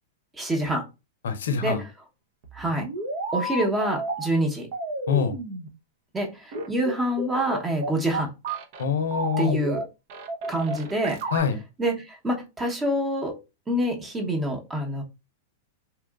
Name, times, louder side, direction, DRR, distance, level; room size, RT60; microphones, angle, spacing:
voice 1, 0.4-0.8 1.6-1.9 2.5-2.9 3.3-4.7 6.1-8.3 9.4-9.9 10.5-11.2 11.8-13.3 13.7-15.0, right 1 dB, 15° right, 0.9 m, -26 dB
voice 2, 1.2-1.8 5.1-5.3 8.8-9.6 11.3-11.6, left 6 dB, 80° left, 0.6 m, -24 dB
sound 1, 2.4-4.2 4.7-5.7 6.5-8.8 9.1-9.8 10.1-11.4, right 2 dB, 55° right, 0.6 m, -31 dB
2.8 x 2.3 x 2.3 m
hypercardioid pair, 120°, 0 cm